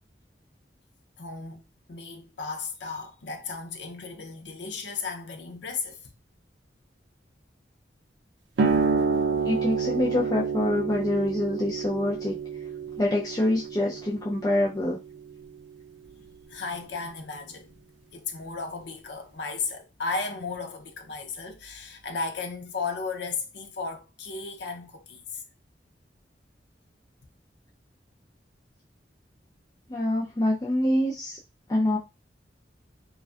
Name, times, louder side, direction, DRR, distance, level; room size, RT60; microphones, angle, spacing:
voice 1, 1.2-6.1 16.1-17.8 18.1-25.4, left 4 dB, 70° left, 0.5 m, -35 dB
sound 1, 8.6-15.7, right 5 dB, 85° right, 0.4 m, -29 dB
voice 2, 9.4-12.3 13.0-15.0 29.9-31.4 31.7-32.0, left 1 dB, 20° left, 0.4 m, -25 dB
2.5 x 2.2 x 2.3 m
head